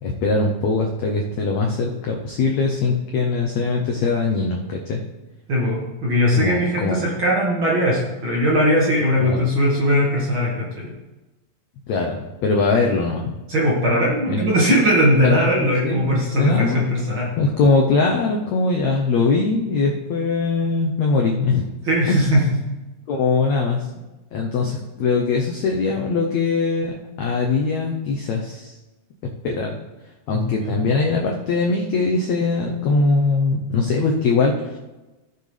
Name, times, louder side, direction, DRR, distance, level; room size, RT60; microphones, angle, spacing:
voice 1, 0.0-5.0 6.3-7.0 9.2-9.4 11.9-13.3 14.3-14.4 15.2-16.8 17.4-21.7 22.1-22.2 23.1-23.9 24.3-28.7 29.4-29.7 30.3-34.8, left 4 dB, 75° left, 0 dB, 1.6 m, -21 dB
voice 2, 5.5-10.9 13.5-17.3 21.8-22.4 30.3-30.8, equal, 45° right, -5 dB, 2.0 m, -19 dB
16.0 x 6.8 x 3.3 m, 1.1 s
omnidirectional pair, 4.3 m